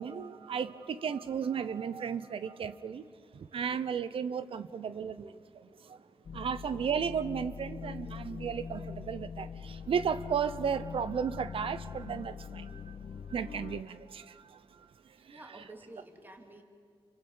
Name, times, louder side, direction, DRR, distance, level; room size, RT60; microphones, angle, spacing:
voice 1, 0.0-3.1 3.3-6.0 6.3-13.0 13.3-14.4 15.3-15.4, right 7 dB, 70° right, 13 dB, 0.8 m, -34 dB
voice 2, 5.7-6.5 15.3-16.6, right 1 dB, 20° right, 3 dB, 2.6 m, -52 dB
sound 1, 6.2-13.8, left 6 dB, 55° left, 0.7 m, -43 dB
29.0 x 24.5 x 5.6 m, 2.2 s
cardioid pair, 75°, 10 cm